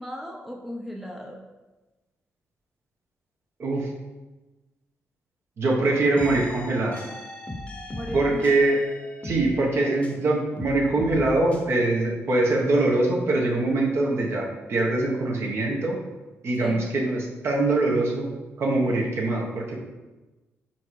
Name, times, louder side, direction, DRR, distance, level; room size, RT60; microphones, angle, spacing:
voice 1, 0.0-1.4 7.9-8.5 16.6-16.9, equal, 5° right, 0 dB, 0.6 m, -36 dB
voice 2, 5.6-6.9 8.1-8.8 9.2-16.0 16.4-18.3 18.6-19.8, right 2 dB, 50° right, -1 dB, 1.3 m, -23 dB
sound 1, 6.2-10.2 10.6-11.6, left 2 dB, 25° left, 0.9 m, -38 dB
4.5 x 4.4 x 4.7 m, 1.2 s
cardioid pair, 115°, 5 cm